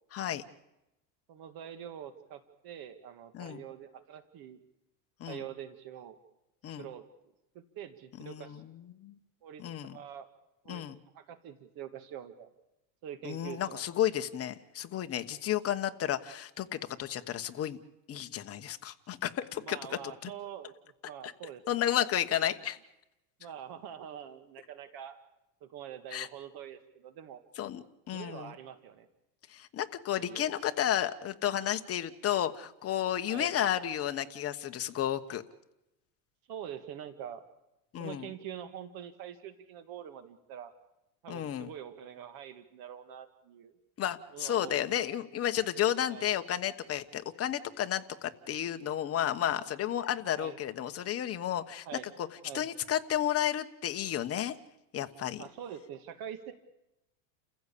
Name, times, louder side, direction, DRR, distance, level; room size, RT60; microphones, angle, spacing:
voice 1, 0.1-0.4 3.3-3.6 5.2-5.4 6.6-6.9 8.2-9.1 9.6-10.0 10.7-11.0 13.2-17.8 18.1-19.8 20.2-20.3 21.2-21.3 21.7-22.8 26.1-26.3 27.6-28.5 29.5-35.4 37.9-38.3 41.3-41.7 44.0-51.9 52.5-54.5 54.9-55.4, left 11 dB, 30° left, 8 dB, 1.3 m, -32 dB
voice 2, 1.3-4.6 5.3-6.2 6.8-7.0 7.6-8.6 9.4-9.6 9.9-10.3 10.6-10.8 11.1-12.5 13.0-13.8 19.6-20.7 21.0-22.1 23.4-25.2 25.6-27.4 28.1-29.1 30.1-30.5 33.3-33.5 36.5-37.4 38.0-40.7 41.2-43.7 44.3-45.0 46.1-46.3 50.3-50.6 51.9-52.7 55.4-56.5, right 9 dB, 45° right, 10 dB, 1.9 m, -45 dB
29.5 x 15.5 x 8.5 m, 0.92 s
supercardioid pair, 135°, 48 cm